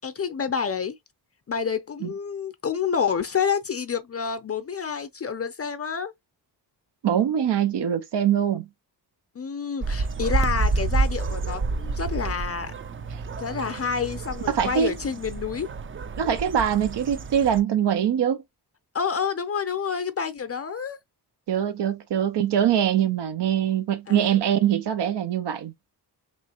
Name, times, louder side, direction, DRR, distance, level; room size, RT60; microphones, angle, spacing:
voice 1, 0.0-0.9 1.5-6.1 9.4-12.7 13.3-15.7 18.9-21.0 24.1-24.3, left 6 dB, 35° left, 0.5 m, -28 dB
voice 2, 7.0-8.7 14.5-14.9 16.2-18.4 21.5-25.7, right 9 dB, 85° right, 0.6 m, -23 dB
sound 1, 9.8-17.6, right 3 dB, 30° right, 0.4 m, -29 dB
3.2 x 3.1 x 2.8 m
wide cardioid pair, 85°, 41 cm